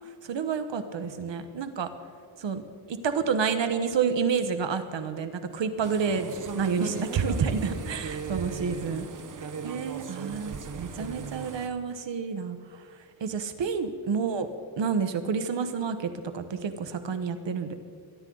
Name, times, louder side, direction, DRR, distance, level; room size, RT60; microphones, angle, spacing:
voice 1, 0.2-1.9 2.4-2.6 2.9-9.1 9.4-12.8 13.2-14.5 14.8-17.8, right 6 dB, 65° right, 9 dB, 1.2 m, -29 dB
sound 1, 5.8-11.7, right 5 dB, 40° right, 1.0 m, -38 dB
23.0 x 11.5 x 3.9 m, 2.3 s
wide cardioid pair, 105°, 47 cm